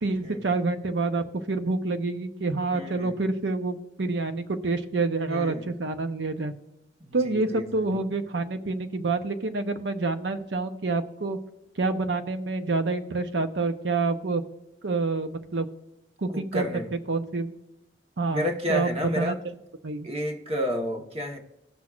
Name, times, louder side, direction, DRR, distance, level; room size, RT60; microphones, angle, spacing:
voice 1, 0.0-6.5 7.1-11.4 11.8-14.4 14.8-15.7 16.2-16.7 17.1-17.5 18.2-19.4 19.8-20.1, right 3 dB, 85° right, 8 dB, 0.7 m, -27 dB
voice 2, 2.7-3.1 5.3-5.7 7.0-8.0 16.3-16.9 18.3-19.4 20.0-21.4, left 1 dB, 35° right, 2 dB, 1.2 m, -31 dB
17.0 x 6.1 x 2.4 m, 0.93 s
head